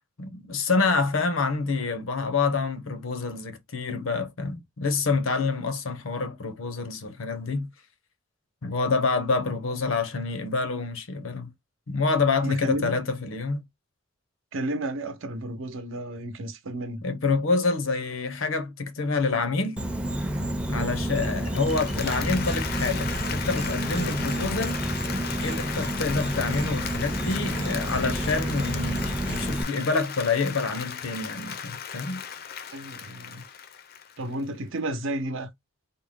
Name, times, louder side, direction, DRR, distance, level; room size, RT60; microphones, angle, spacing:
voice 1, 0.2-7.7 8.6-11.5 11.9-13.6 17.0-19.8 20.7-24.8 25.4-32.2, left 4 dB, 75° left, 0.8 m, -27 dB
voice 2, 12.4-13.0 14.5-17.0 32.7-33.4 34.2-35.5, right 1 dB, 70° right, 0.7 m, -32 dB
Insect, 19.8-29.6, right 1 dB, 5° right, 0.5 m, -29 dB
Applause, 21.4-34.4, left 7 dB, 45° left, 0.5 m, -36 dB
3.7 x 2.1 x 3.6 m
head